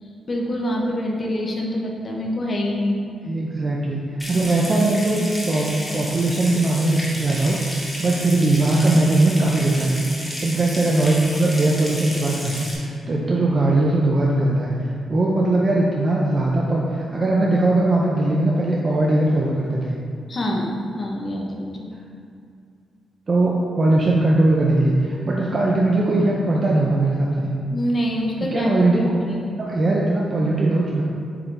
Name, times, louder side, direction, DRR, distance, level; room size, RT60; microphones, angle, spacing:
voice 1, 0.3-3.0 4.3-4.4 20.3-21.9 27.7-28.7 29.3-29.5, equal, 35° left, -1 dB, 0.9 m, -25 dB
voice 2, 3.3-4.0 4.3-14.7 15.1-20.0 23.3-27.5 28.4-29.1 29.6-31.0, right 2 dB, 35° right, -3 dB, 0.6 m, -20 dB
Water tap faucet / Sink (filling or washing) / Trickle dribble, 4.2-12.7, equal, 5° left, 1.3 m, -32 dB
8.0 x 3.8 x 3.4 m, 2.4 s
cardioid pair, 130°, 0 cm